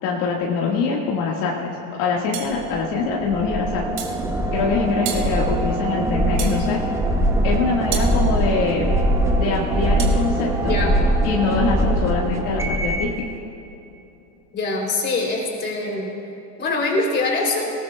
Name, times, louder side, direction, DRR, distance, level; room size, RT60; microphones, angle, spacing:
voice 1, 0.0-1.7 2.0-3.9 4.5-6.8 7.4-8.9 9.4-10.8 11.2-13.2, left 4 dB, 60° left, -3 dB, 1.9 m, -23 dB
sound 1, 2.3-2.6 4.0-4.2 5.0-5.3 6.4-6.6 7.9-8.1 10.0-10.2, right 8 dB, 75° right, 2.4 m, -30 dB
sound 2, 2.6-13.2, right 1 dB, 5° right, 0.7 m, -22 dB
voice 2, 10.6-11.0 14.5-17.7, left 2 dB, 25° left, -2 dB, 3.2 m, -24 dB
19.5 x 18.5 x 2.3 m, 2.8 s
supercardioid pair, 135°, 43 cm